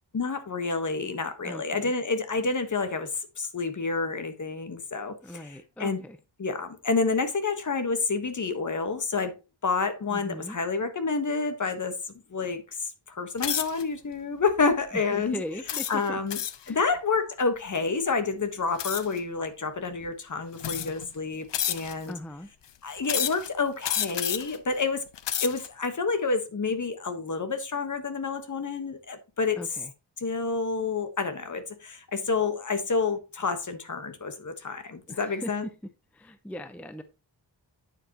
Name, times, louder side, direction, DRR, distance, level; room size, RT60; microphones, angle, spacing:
voice 1, 0.1-6.0 6.4-9.4 9.6-12.0 12.3-15.4 15.9-16.4 16.7-22.1 22.8-25.1 25.4-29.6 30.2-35.7, left 4 dB, 45° left, 1.3 m, -29 dB
voice 2, 1.4-1.9 5.2-6.2 10.1-10.6 14.9-16.2 16.6-16.8 22.1-22.5 29.6-29.9 35.1-35.5 36.1-37.0, left 1 dB, 5° left, 0.6 m, -39 dB
sound 1, 13.4-13.8 14.5-14.7 15.7-16.7 18.8-19.2 20.0-20.1 20.6-21.1 21.5-22.1 23.0-23.5 23.8-24.6 25.1-25.7, left 10 dB, 75° left, 0.7 m, -30 dB
9.0 x 7.5 x 2.9 m
wide cardioid pair, 150°, 43 cm